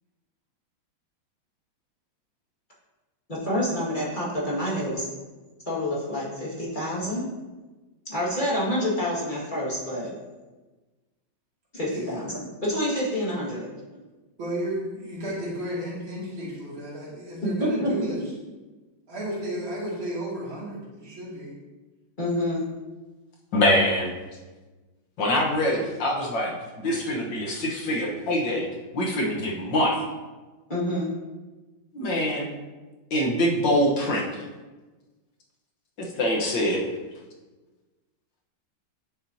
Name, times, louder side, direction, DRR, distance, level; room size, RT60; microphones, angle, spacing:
voice 1, 3.3-5.1 5.7-7.2 8.1-10.1 11.7-13.7 17.8-17.9 22.2-22.7 30.7-31.1, left 1 dB, 25° left, -7 dB, 2.0 m, -28 dB
voice 2, 14.4-18.2 19.1-21.5, right 1 dB, 75° right, -6 dB, 3.2 m, -33 dB
voice 3, 23.5-24.1 25.2-28.7 28.9-30.0 31.9-32.6 33.1-34.4 36.0-36.8, left 1 dB, 65° left, -2 dB, 1.9 m, -24 dB
9.3 x 7.2 x 2.8 m, 1.2 s
omnidirectional pair, 2.2 m